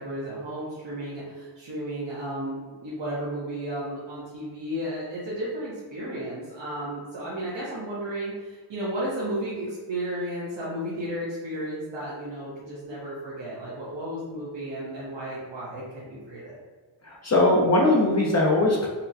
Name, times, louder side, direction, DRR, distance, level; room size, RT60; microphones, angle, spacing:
voice 1, 0.0-16.6, right 1 dB, 70° right, -8 dB, 0.9 m, -33 dB
voice 2, 17.0-18.9, left 2 dB, 35° left, -3 dB, 0.5 m, -20 dB
4.2 x 2.1 x 2.6 m, 1.4 s
wide cardioid pair, 125°, 46 cm